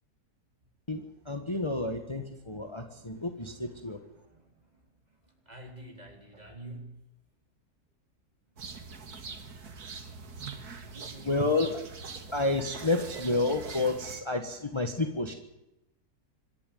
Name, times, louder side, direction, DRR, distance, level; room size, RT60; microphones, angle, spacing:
voice 1, 1.3-4.0 11.2-11.8 12.3-15.3, left 2 dB, 20° left, 5 dB, 1.6 m, -30 dB
voice 2, 3.0-4.7 5.2-7.0 10.9-11.7 13.3-13.4, right 1 dB, 25° right, 3 dB, 4.3 m, -49 dB
sound 1, 8.6-14.2, right 5 dB, 80° right, 2.4 m, -43 dB
26.0 x 11.5 x 9.3 m, 0.92 s
omnidirectional pair, 1.6 m